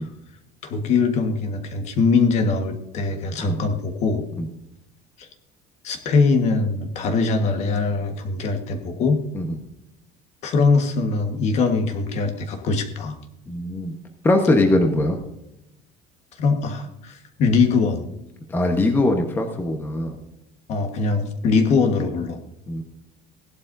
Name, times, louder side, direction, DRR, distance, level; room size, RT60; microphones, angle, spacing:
voice 1, 0.6-4.2 5.2-5.3 5.8-9.2 10.4-13.2 16.4-18.1 20.7-22.4, left 4 dB, 45° left, 6 dB, 1.4 m, -22 dB
voice 2, 13.5-13.9 14.2-15.2 18.5-20.2 22.7-22.8, left 2 dB, 15° left, 3 dB, 1.1 m, -21 dB
17.0 x 11.5 x 2.6 m, 0.84 s
cardioid pair, 165°, 16 cm